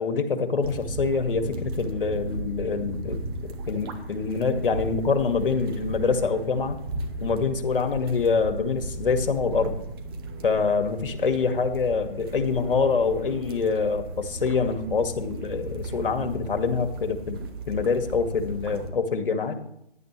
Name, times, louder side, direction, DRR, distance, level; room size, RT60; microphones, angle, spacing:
voice 1, 0.0-3.2 3.7-6.8 7.2-9.8 10.4-17.4 17.7-19.6, left 5 dB, 55° left, 7 dB, 2.1 m, -25 dB
sound 1, 0.6-18.9, right 2 dB, 25° right, 1.3 m, -35 dB
17.5 x 10.5 x 3.3 m, 0.77 s
figure-of-eight pair, 150°, 32 cm